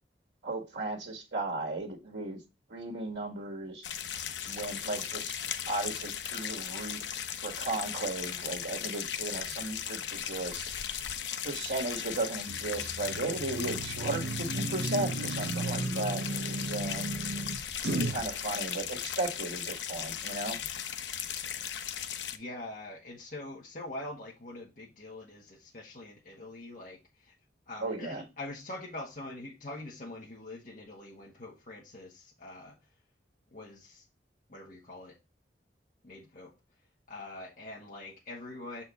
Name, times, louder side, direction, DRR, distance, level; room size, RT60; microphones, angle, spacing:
voice 1, 0.4-2.4 2.7-3.8 4.4-7.0 7.4-10.7 11.4-17.0 18.1-20.6 27.8-28.2, right 2 dB, 85° right, 1.7 m, -36 dB
sound 1, 3.8-22.4, left 9 dB, 85° left, 0.7 m, -37 dB
sound 2, 12.5-18.3, right 2 dB, 60° right, 0.8 m, -35 dB
voice 2, 22.3-27.3 27.7-32.8 33.5-34.0 34.5-35.1 36.0-36.5 37.1-38.8, left 2 dB, 45° left, 1.5 m, -44 dB
6.7 x 4.4 x 4.2 m
head